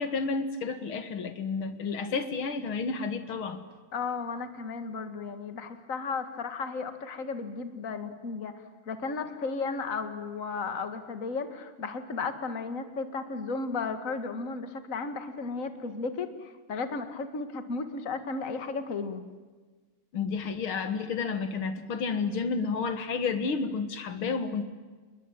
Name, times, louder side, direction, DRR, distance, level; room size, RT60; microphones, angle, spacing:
voice 1, 0.0-3.7 20.1-24.6, left 5 dB, 80° left, 10 dB, 2.5 m, -31 dB
voice 2, 3.9-19.2, left 4 dB, 40° left, 9 dB, 2.2 m, -34 dB
27.5 x 21.5 x 8.9 m, 1.4 s
omnidirectional pair, 2.3 m